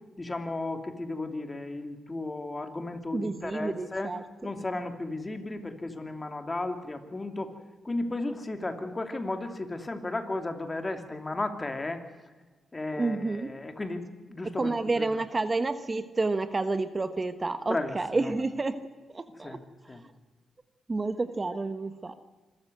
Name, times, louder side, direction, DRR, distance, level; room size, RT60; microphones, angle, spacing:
voice 1, 0.2-4.1 4.4-7.5 7.8-12.0 12.7-15.2 17.7-17.9 19.4-19.6 19.9-20.0, left 2 dB, 25° left, 6 dB, 2.8 m, -34 dB
voice 2, 3.1-4.5 13.0-13.5 14.6-18.8 19.1-20.1 20.9-22.1, right 3 dB, 30° right, 11 dB, 1.3 m, -30 dB
26.0 x 14.0 x 7.9 m, 1.3 s
cardioid pair, 60°, 0 cm